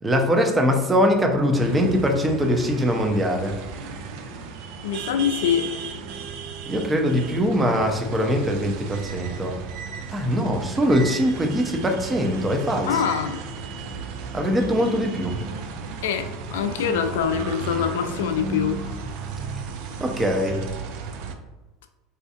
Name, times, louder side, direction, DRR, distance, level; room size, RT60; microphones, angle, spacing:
voice 1, 0.0-3.6 6.7-9.6 10.1-13.0 14.3-15.4 20.0-20.6, equal, 15° right, 3 dB, 0.6 m, -22 dB
sound 1, 1.5-21.4, right 5 dB, 60° right, 0.3 m, -34 dB
voice 2, 4.8-5.7 12.9-13.4 16.0-18.8, left 8 dB, 70° left, 8 dB, 0.3 m, -24 dB
4.1 x 2.5 x 2.5 m, 1.1 s
hypercardioid pair, 80°, 0 cm